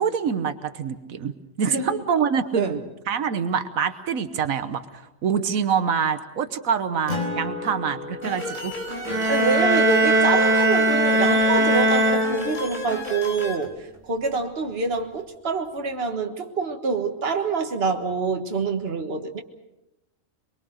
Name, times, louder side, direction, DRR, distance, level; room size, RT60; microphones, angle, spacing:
voice 1, 0.0-1.3 1.6-4.8 5.2-8.7 9.2-9.3, right 7 dB, 90° right, 1.5 m, -25 dB
voice 2, 1.6-2.0 2.6-2.8 9.3-19.4, right 4 dB, 50° right, 1.8 m, -26 dB
Acoustic guitar, 7.1-12.0, left 3 dB, 70° left, 4.8 m, -36 dB
sound 1, 8.2-13.6, left 1 dB, 35° left, 4.2 m, -33 dB
sound 2, 9.0-12.9, right 1 dB, 25° right, 3.7 m, -20 dB
24.0 x 23.0 x 6.5 m
omnidirectional pair, 1.4 m